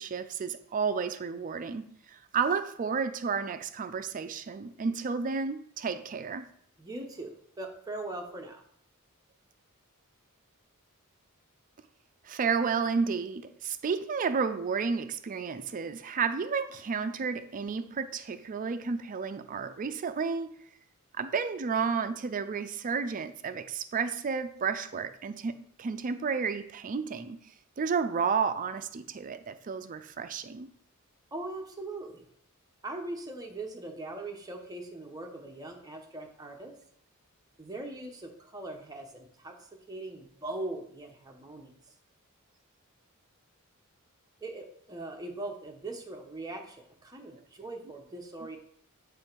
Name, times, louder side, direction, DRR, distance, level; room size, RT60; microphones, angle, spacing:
voice 1, 0.0-6.5 12.2-20.6 21.2-27.4 27.8-30.7, right 5 dB, 35° right, 0.4 m, -31 dB
voice 2, 6.8-8.6 31.3-32.3 32.8-36.7 37.6-41.7 44.4-48.6, right 2 dB, 15° right, 0.8 m, -40 dB
6.9 x 3.2 x 4.5 m
head